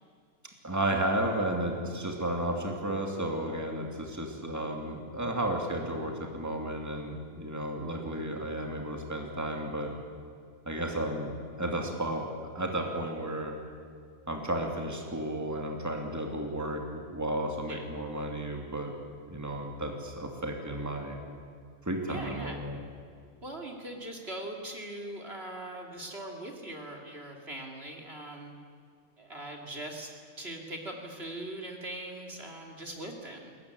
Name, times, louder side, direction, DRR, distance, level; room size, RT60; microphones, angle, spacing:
voice 1, 0.6-9.9 10.7-11.3 11.6-12.3 12.5-13.6 14.3-18.9 19.3-21.2 21.8-22.8, right 1 dB, 10° right, 2 dB, 2.8 m, -33 dB
voice 2, 22.1-22.6 23.4-28.5 29.2-33.5, right 1 dB, 45° right, 2 dB, 3.0 m, -41 dB
22.5 x 20.5 x 9.7 m, 2.2 s
omnidirectional pair, 1.4 m